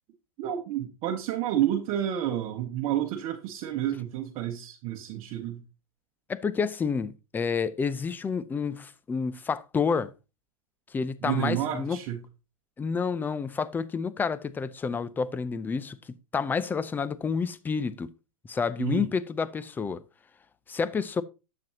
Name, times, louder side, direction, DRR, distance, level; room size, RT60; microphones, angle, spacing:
voice 1, 0.4-5.6 11.2-12.2 18.8-19.1, right 11 dB, 40° right, 1.2 m, -30 dB
voice 2, 6.3-10.1 10.9-12.0 12.8-16.0 16.3-18.1 18.5-20.0 20.7-21.2, left 5 dB, 10° left, 0.5 m, -29 dB
10.5 x 7.7 x 2.9 m
hypercardioid pair, 120°, 18 cm